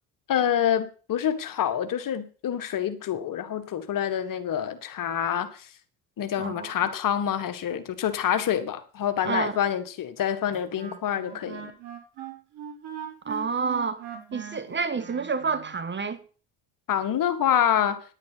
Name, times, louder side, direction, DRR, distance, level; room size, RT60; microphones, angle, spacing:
voice 1, 0.3-5.7 6.2-11.7 16.9-18.0, left 9 dB, 45° left, 1.6 m, -27 dB
voice 2, 6.4-6.7 9.2-9.5 13.2-16.2, right 5 dB, 25° right, 1.1 m, -29 dB
Wind instrument woodwind instrument, 10.5-15.8, right 8 dB, 60° right, 3.9 m, -41 dB
10.5 x 8.9 x 5.7 m
hypercardioid pair, 60°, 45 cm